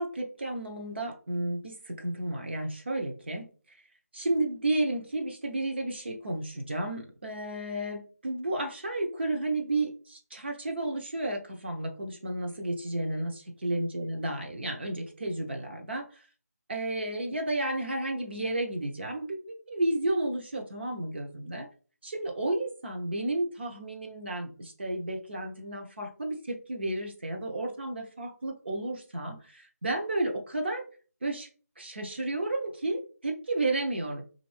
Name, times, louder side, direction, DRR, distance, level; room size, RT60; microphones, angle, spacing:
voice 1, 0.0-3.5 4.1-16.0 16.7-21.7 22.0-30.8 31.2-31.5 31.8-34.2, right 2 dB, 40° right, 3 dB, 0.7 m, -32 dB
5.1 x 2.5 x 3.2 m, 0.39 s
figure-of-eight pair, 165°, 9 cm